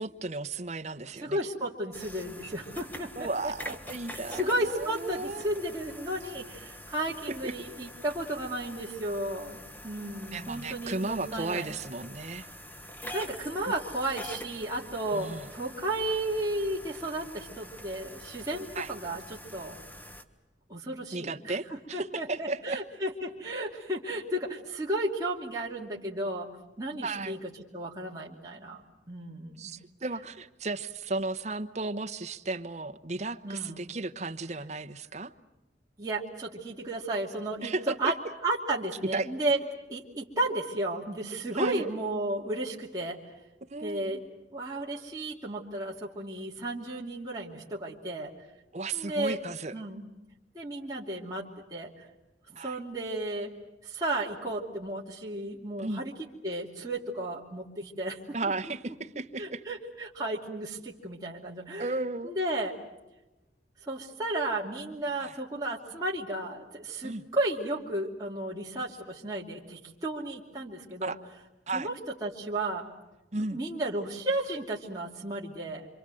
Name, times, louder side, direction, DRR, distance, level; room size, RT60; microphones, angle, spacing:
voice 1, 0.0-1.4 3.2-5.5 7.4-7.5 10.3-12.5 15.1-15.5 18.8-18.9 21.1-22.8 27.0-27.4 29.6-35.3 37.6-38.1 39.1-39.3 41.5-41.9 43.6-44.2 48.7-49.7 52.6-52.8 55.8-56.0 58.3-59.6 61.8-62.3 65.2-65.3 67.0-67.2 71.0-71.2 71.7-71.9 73.3-73.6, right 3 dB, 40° right, 8 dB, 1.0 m, -34 dB
voice 2, 1.1-3.7 4.3-9.6 9.8-11.7 13.1-19.8 20.7-26.5 26.8-28.8 29.1-29.7 33.4-33.8 36.0-38.1 38.4-39.6 39.9-43.2 43.8-44.2 44.5-48.3 48.9-49.4 49.7-50.0 50.5-52.1 52.5-53.5 53.8-56.1 56.4-58.4 59.1-61.9 62.2-62.7 63.8-71.2 71.7-72.8 73.4-75.9, right 1 dB, 20° right, -4 dB, 2.6 m, -33 dB
sound 1, 1.9-20.2, equal, 10° left, 1.4 m, -45 dB
27.0 x 25.5 x 7.8 m, 1.0 s
head